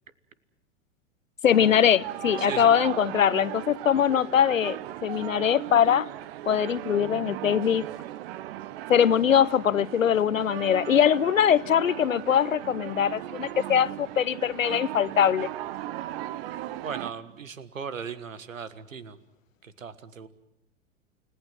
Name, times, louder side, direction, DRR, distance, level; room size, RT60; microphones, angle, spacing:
voice 1, 1.4-6.1 6.5-7.8 8.9-15.5, left 9 dB, 80° left, 0.9 m, -22 dB
sound 1, 1.5-17.1, right 14 dB, 50° right, 1.0 m, -37 dB
voice 2, 2.4-2.7 16.8-19.2 19.6-20.3, right 6 dB, 80° right, 1.6 m, -38 dB
30.0 x 18.5 x 7.6 m
figure-of-eight pair, 95°, 39 cm